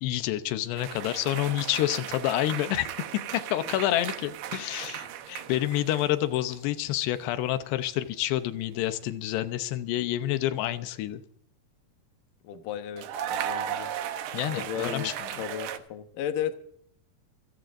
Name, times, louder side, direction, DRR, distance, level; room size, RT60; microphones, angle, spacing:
voice 1, 0.0-2.9 3.3-11.2 14.3-15.4, left 13 dB, 90° left, 11 dB, 3.0 m, -28 dB
sound 1, 0.8-6.3 6.5-7.0 8.9-9.1 13.0-15.8, right 10 dB, 80° right, 3.2 m, -36 dB
voice 2, 12.4-13.1 13.3-13.9 14.5-16.5, left 9 dB, 65° left, 7 dB, 2.5 m, -34 dB
27.0 x 15.0 x 2.6 m, 0.64 s
omnidirectional pair, 4.8 m